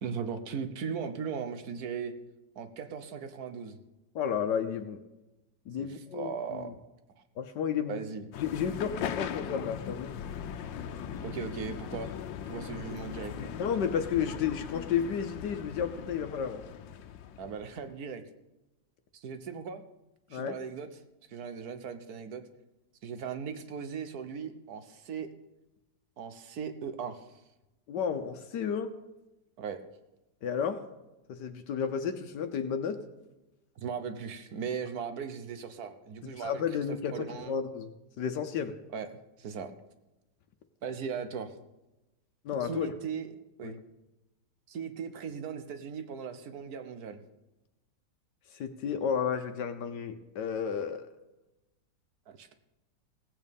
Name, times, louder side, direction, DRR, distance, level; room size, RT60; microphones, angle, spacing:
voice 1, 0.0-2.1 2.6-3.8 5.8-6.8 7.9-8.3 11.2-12.1 12.5-13.5 17.4-18.2 19.1-19.8 20.3-20.9 21.3-22.4 23.0-25.3 26.2-27.3 29.6-29.8 33.8-36.6 36.9-37.6 38.9-39.1 39.4-39.7 40.8-41.5 42.6-43.3 43.6-43.8 44.7-47.2 52.3-52.5, right 6 dB, 60° right, 10 dB, 1.4 m, -38 dB
voice 2, 4.1-5.0 5.7-6.7 7.4-8.0 8.4-10.1 13.4-16.6 20.3-20.5 27.9-28.9 30.4-30.8 31.3-33.0 36.4-37.9 38.2-38.7 42.4-42.9 43.6-43.7 48.5-51.1, left 7 dB, 70° left, 7 dB, 1.4 m, -32 dB
sound 1, 8.3-17.9, left 8 dB, 90° left, 1.5 m, -39 dB
16.5 x 8.7 x 5.3 m, 1.0 s
omnidirectional pair, 2.0 m